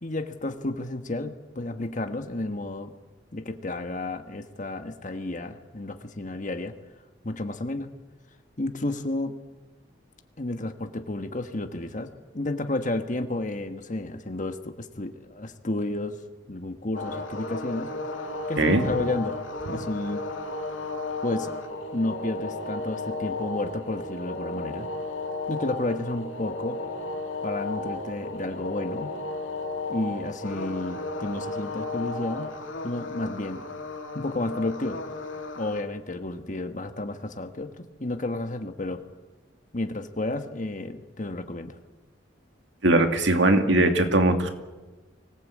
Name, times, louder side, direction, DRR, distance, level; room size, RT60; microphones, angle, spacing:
voice 1, 0.0-2.9 3.3-6.7 7.2-7.9 8.6-9.4 10.4-16.2 16.5-17.9 18.5-19.4 19.7-20.2 21.2-21.5 21.9-24.9 25.5-26.8 27.4-29.1 29.9-32.5 32.8-33.6 34.1-35.0 35.6-39.0 39.7-41.8, left 2 dB, 40° left, 7 dB, 1.4 m, -31 dB
sound 1, 16.9-35.8, left 2 dB, 90° left, 2.9 m, -34 dB
voice 2, 42.8-44.5, right 2 dB, 70° right, 6 dB, 2.4 m, -20 dB
24.5 x 18.5 x 8.5 m, 1.2 s
head